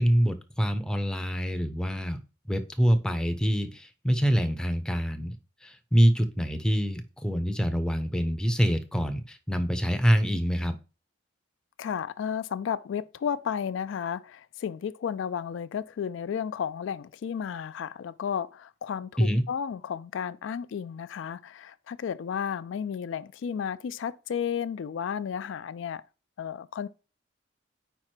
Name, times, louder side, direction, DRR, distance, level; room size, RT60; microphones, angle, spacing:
voice 1, 0.0-2.2 2.5-5.3 5.6-10.7 19.2-19.4, equal, 5° left, 0.5 m, -25 dB
voice 2, 11.8-26.0 26.4-26.9, left 7 dB, 80° left, 0.3 m, -33 dB
4.8 x 4.5 x 4.4 m
head